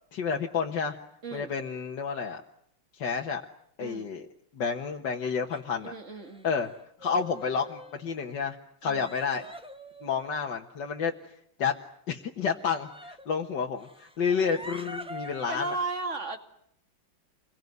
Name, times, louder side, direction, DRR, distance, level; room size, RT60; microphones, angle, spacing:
voice 1, 0.1-1.0 1.3-2.4 2.9-3.4 3.8-4.3 4.5-5.9 6.4-6.7 7.0-8.6 8.8-9.5 10.0-11.8 12.1-15.8, left 6 dB, 65° left, 1 dB, 2.0 m, -30 dB
voice 2, 1.2-1.5 3.8-4.1 5.8-6.5 8.8-9.1 15.5-16.4, right 3 dB, 40° right, 7 dB, 2.6 m, -35 dB
sound 1, 5.5-5.6 6.2-6.7 7.0-8.1 8.8-10.5 12.4-13.3 13.8-15.8, equal, 5° right, 1.5 m, -44 dB
27.5 x 23.0 x 9.4 m, 0.74 s
omnidirectional pair, 2.1 m